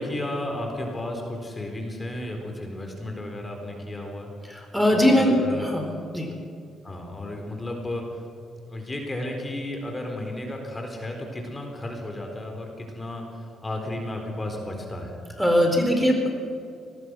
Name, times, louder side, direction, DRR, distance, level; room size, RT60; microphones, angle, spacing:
voice 1, 0.0-4.3 4.9-5.7 6.8-8.2 8.7-15.2, left 1 dB, 20° left, 2 dB, 4.1 m, -33 dB
voice 2, 4.5-5.9 6.1-6.3 15.4-16.3, equal, ahead, 3 dB, 4.3 m, -21 dB
24.5 x 20.0 x 6.3 m, 2.5 s
cardioid pair, 90°, 0 cm